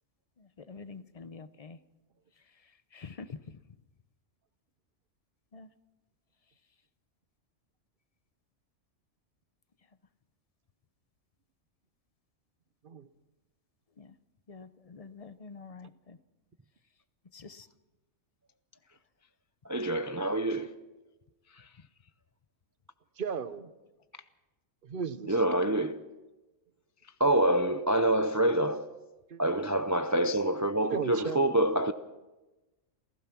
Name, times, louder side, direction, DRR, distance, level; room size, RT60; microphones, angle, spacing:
voice 1, 0.4-1.8 2.5-3.6 5.5-5.7 14.0-14.2 14.5-16.2 17.3-17.7, left 4 dB, 35° left, 14 dB, 0.6 m, -47 dB
voice 2, 19.6-20.7 25.3-26.0 27.2-28.9 29.4-31.9, right 1 dB, 25° right, 10 dB, 0.4 m, -26 dB
voice 3, 23.2-23.7 24.8-25.4 29.3-29.4 30.8-31.5, right 6 dB, 45° right, 13 dB, 1.0 m, -35 dB
27.5 x 16.0 x 6.0 m, 1.1 s
omnidirectional pair, 1.3 m